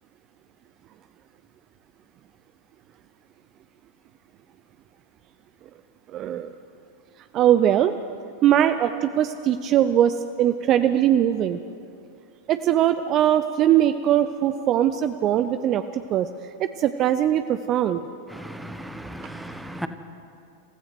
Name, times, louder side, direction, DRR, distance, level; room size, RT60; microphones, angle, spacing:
voice 1, 6.1-6.5 7.3-7.9 8.4-11.6 12.5-16.3 16.6-18.0, right 11 dB, 35° right, 0.6 m, -21 dB
voice 2, 18.3-19.9, right 1 dB, 5° right, 1.3 m, -36 dB
27.5 x 15.5 x 6.1 m
figure-of-eight pair, 90°, 0 cm